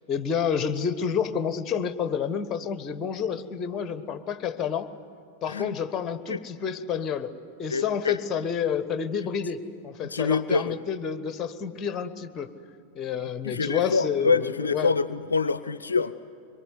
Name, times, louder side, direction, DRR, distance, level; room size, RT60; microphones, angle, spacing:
voice 1, 0.1-4.9 5.4-7.3 7.6-12.5 12.9-14.9, left 7 dB, 25° left, 12 dB, 1.2 m, -29 dB
voice 2, 7.7-8.2 10.0-10.8 13.4-16.1, left 4 dB, 75° left, 15 dB, 0.5 m, -26 dB
24.0 x 22.5 x 9.6 m, 2.5 s
figure-of-eight pair, 90°, 0 cm